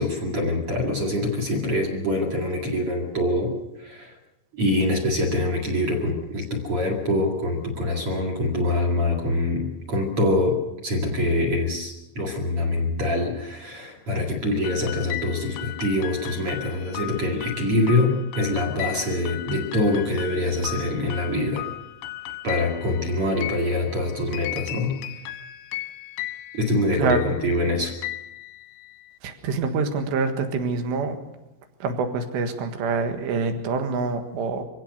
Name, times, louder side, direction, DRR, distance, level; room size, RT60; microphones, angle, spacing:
voice 1, 0.0-3.5 3.8-4.2 4.5-10.6 10.8-21.6 22.4-25.0 26.5-27.9, left 1 dB, 40° right, 1 dB, 2.1 m, -24 dB
sound 1, 14.6-29.1, left 15 dB, 75° left, 2.7 m, -36 dB
voice 2, 29.2-31.2 31.8-34.6, right 4 dB, 65° right, 7 dB, 3.5 m, -26 dB
24.5 x 16.5 x 6.6 m, 0.94 s
omnidirectional pair, 6.0 m